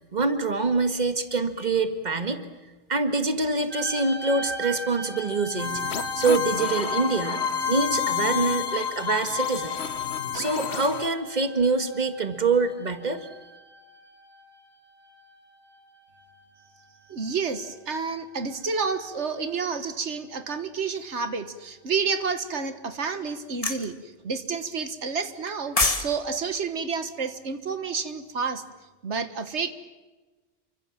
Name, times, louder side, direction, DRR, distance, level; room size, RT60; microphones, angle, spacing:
voice 1, 0.0-2.5 2.9-5.8 6.2-9.8 10.3-13.3, right 3 dB, 40° right, 8 dB, 1.9 m, -25 dB
sound 1, 3.7-16.7 16.9-17.7 18.5-18.7, right 2 dB, 10° right, 6.6 m, -40 dB
sound 2, 5.6-11.1, left 9 dB, 70° left, 1.3 m, -29 dB
voice 2, 17.1-28.6 29.0-29.7, right 5 dB, 90° right, 10 dB, 1.7 m, -30 dB
sound 3, 23.6-23.9 25.5-26.1 26.4-26.6, left 2 dB, 30° left, 1.8 m, -24 dB
28.5 x 24.5 x 7.4 m, 1.2 s
omnidirectional pair, 1.1 m